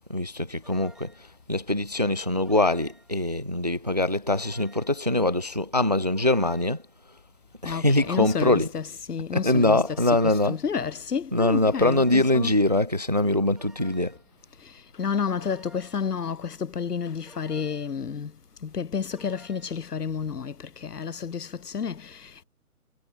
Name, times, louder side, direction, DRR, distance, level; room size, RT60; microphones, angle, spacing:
voice 1, 0.1-1.1 1.5-6.8 7.6-8.7 9.3-10.6 11.3-14.2, left 1 dB, 30° right, 0.4 m, -23 dB
sound 1, 0.6-1.3 2.5-3.2 4.3-5.0 6.2-6.9 8.0-8.7 9.9-10.6 11.7-12.4 13.6-14.3 15.4-16.2 17.3-18.0 19.1-19.9, right 1 dB, ahead, 2.1 m, -54 dB
voice 2, 7.6-12.5 14.6-18.4 18.6-22.4, left 6 dB, 85° left, 1.2 m, -31 dB
figure-of-eight pair, 145°, 45 cm